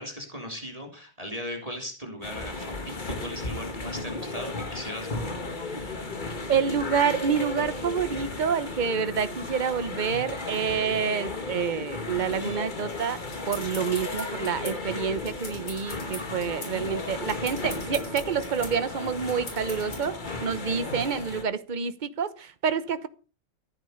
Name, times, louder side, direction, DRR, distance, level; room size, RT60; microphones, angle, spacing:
voice 1, 0.0-6.0, equal, 20° right, 3.2 m, -38 dB
sound 1, 2.2-21.4, left 2 dB, 25° left, 1.6 m, -35 dB
voice 2, 6.5-23.1, right 6 dB, 35° right, 0.9 m, -28 dB
sound 2, 13.3-20.1, left 3 dB, 85° left, 5.5 m, -42 dB
14.5 x 9.1 x 6.6 m
omnidirectional pair, 2.0 m